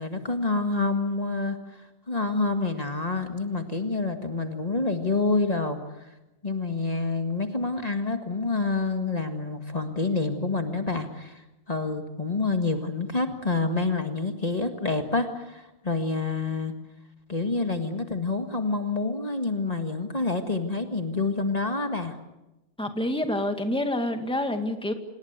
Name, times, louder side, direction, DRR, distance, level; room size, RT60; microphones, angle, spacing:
voice 1, 0.0-6.1 6.4-11.4 11.7-16.7 17.3-22.2, left 3 dB, 40° left, 5 dB, 1.9 m, -28 dB
voice 2, 22.8-24.9, left 1 dB, 5° left, 6 dB, 2.0 m, -27 dB
27.0 x 20.0 x 8.2 m, 0.96 s
omnidirectional pair, 1.0 m